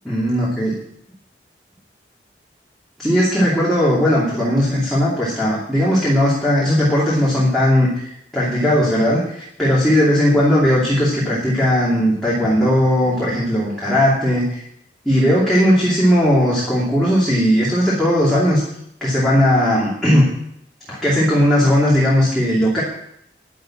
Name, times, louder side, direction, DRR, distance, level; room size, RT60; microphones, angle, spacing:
voice 1, 0.0-0.7 3.0-8.0 8.3-14.6 15.0-18.6 19.0-20.3 20.9-22.8, equal, ahead, -8 dB, 2.7 m, -17 dB
10.5 x 7.7 x 7.3 m, 0.74 s
head